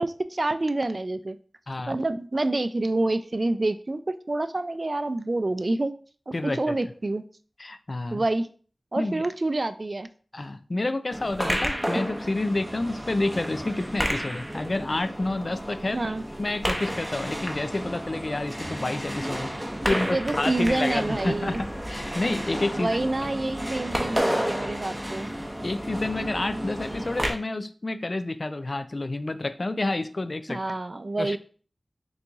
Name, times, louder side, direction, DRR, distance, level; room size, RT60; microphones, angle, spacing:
voice 1, 0.0-1.4 1.9-5.9 6.3-7.2 8.1-8.5 8.9-10.1 15.9-16.2 20.1-21.6 22.7-25.3 30.5-31.4, right 2 dB, 50° right, 11 dB, 0.3 m, -27 dB
voice 2, 6.3-6.7 7.6-8.2 9.0-9.3 10.3-16.0 16.4-21.6 21.9-22.9 23.2-23.3 24.6-24.7 25.6-30.6 31.2-31.4, left 2 dB, 55° left, 11 dB, 0.3 m, -29 dB
sound 1, 11.1-27.3, equal, 5° right, 0.8 m, -31 dB
3.9 x 2.9 x 3.5 m, 0.42 s
wide cardioid pair, 50°, 0 cm